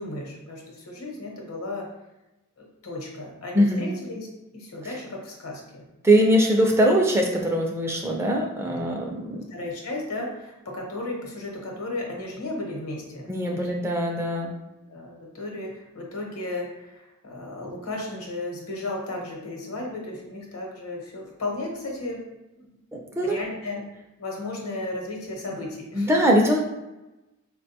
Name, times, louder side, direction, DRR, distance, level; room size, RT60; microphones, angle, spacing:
voice 1, 0.0-1.9 2.6-4.3 4.5-5.8 6.1-6.2 8.7-8.8 9.3-13.7 14.9-22.2 22.5-22.7 23.2-23.8 24.2-26.1, left 2 dB, 75° left, -1 dB, 0.9 m, -34 dB
voice 2, 6.0-9.4 13.3-14.5 22.9-23.4 25.9-26.6, equal, 10° right, 0 dB, 0.4 m, -21 dB
4.5 x 2.2 x 2.7 m, 0.97 s
head